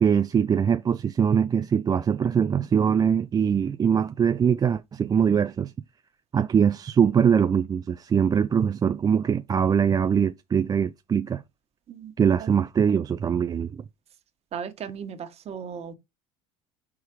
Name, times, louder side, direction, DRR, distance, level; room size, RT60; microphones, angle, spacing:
voice 1, 0.0-5.7 6.3-11.4 12.2-13.7, right 7 dB, 25° right, 0.4 m, -22 dB
voice 2, 14.5-15.9, right 7 dB, 45° right, 1.4 m, -36 dB
4.9 x 4.7 x 4.7 m
hypercardioid pair, 80°, 15 cm